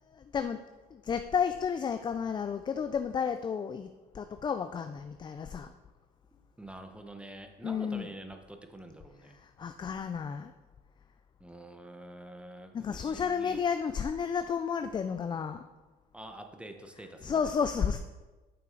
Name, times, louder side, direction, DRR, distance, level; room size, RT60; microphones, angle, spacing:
voice 1, 0.2-0.6 0.9-3.9 4.1-5.7 7.6-8.1 9.3-10.5 12.7-15.6 17.2-18.0, left 6 dB, 25° left, 9 dB, 0.3 m, -32 dB
voice 2, 6.6-9.4 11.4-13.6 16.1-17.4, right 1 dB, 5° right, 6 dB, 0.8 m, -47 dB
8.9 x 6.0 x 3.9 m, 1.2 s
cardioid pair, 110°, 17 cm